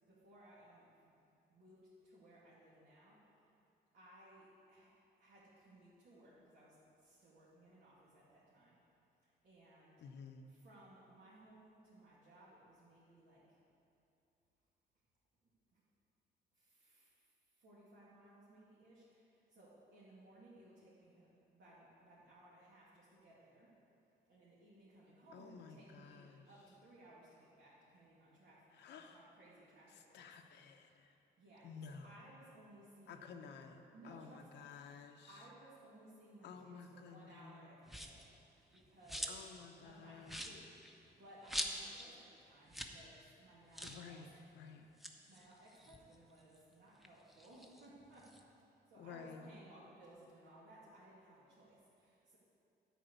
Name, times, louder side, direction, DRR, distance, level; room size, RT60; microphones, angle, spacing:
voice 1, 0.1-1.2 1.5-3.5 3.9-4.9 5.2-8.8 9.2-10.0 10.4-13.4 15.7-15.8 16.5-17.3 17.6-23.7 24.3-30.3 31.4-33.6 33.9-34.7 35.3-38.3 38.7-39.3 39.8-44.4 45.3-52.4, right 1 dB, 75° right, -10 dB, 2.5 m, -61 dB
voice 2, 10.0-10.5 25.3-26.5 28.7-29.3 29.9-31.1 31.6-32.2 33.1-35.5 36.4-37.8 39.3-40.7 43.8-44.9 49.0-49.5, left 5 dB, 85° left, 5 dB, 0.8 m, -53 dB
sound 1, 37.9-38.3 38.7-39.6 39.9-40.0 40.2-42.1 42.4-42.5 42.7-43.0 43.3-43.4 43.7-44.1 44.8-46.6 47.0-48.4, equal, ahead, 0.8 m, -45 dB
10.0 x 4.7 x 8.0 m, 2.7 s
cardioid pair, 95°, 17 cm